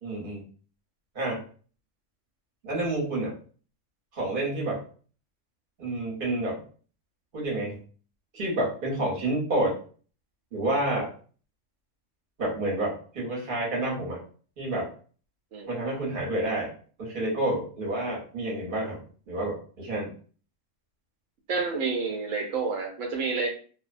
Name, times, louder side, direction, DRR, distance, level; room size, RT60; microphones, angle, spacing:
voice 1, 0.0-0.4 1.1-1.4 2.6-3.3 4.1-4.8 5.8-6.6 7.3-7.8 8.3-9.8 10.5-11.1 12.4-14.2 14.6-14.9 15.7-16.7 17.0-20.1, right 1 dB, 45° right, -3 dB, 1.0 m, -29 dB
voice 2, 21.5-23.5, right 4 dB, 90° right, 1 dB, 1.0 m, -29 dB
2.5 x 2.1 x 2.5 m, 0.41 s
omnidirectional pair, 1.3 m